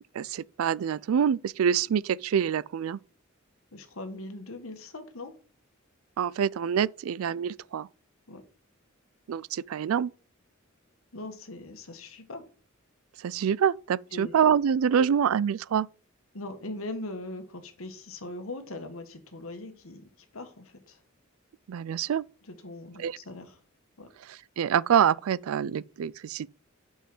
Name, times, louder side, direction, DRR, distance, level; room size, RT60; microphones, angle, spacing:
voice 1, 0.1-3.0 6.2-7.9 9.3-10.1 13.2-15.9 21.7-22.2 23.0-23.2 24.2-26.5, right 8 dB, 85° right, 0.4 m, -26 dB
voice 2, 3.7-5.4 8.3-8.4 11.1-12.4 14.1-14.4 14.9-15.2 16.3-21.0 22.5-23.6 24.0-24.1, left 2 dB, 80° left, 1.5 m, -40 dB
6.2 x 5.5 x 6.0 m
head